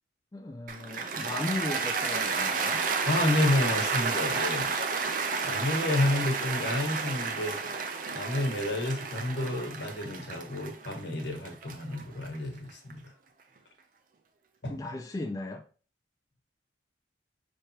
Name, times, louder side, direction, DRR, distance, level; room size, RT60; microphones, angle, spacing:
voice 1, 0.3-2.9 14.7-15.6, left 2 dB, 20° left, 3 dB, 0.3 m, -36 dB
Cheering / Applause, 0.7-12.9, right 4 dB, 45° right, 0.6 m, -31 dB
voice 2, 3.1-4.7 5.4-7.6 8.1-13.1 14.6-14.8, left 1 dB, 65° left, 4 dB, 1.1 m, -30 dB
5.5 x 3.2 x 2.8 m, 0.38 s
head